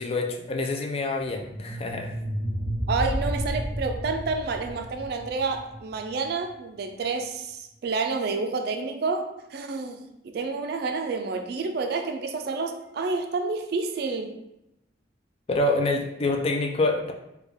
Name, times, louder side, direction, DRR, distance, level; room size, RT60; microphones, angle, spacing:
voice 1, 0.0-2.1 15.5-17.1, left 2 dB, 35° left, 2 dB, 0.4 m, -26 dB
sound 1, 1.4-6.3, equal, 75° left, 1.1 m, -32 dB
voice 2, 2.9-14.4, right 4 dB, 60° right, 6 dB, 0.4 m, -29 dB
3.3 x 2.3 x 3.5 m, 0.86 s
head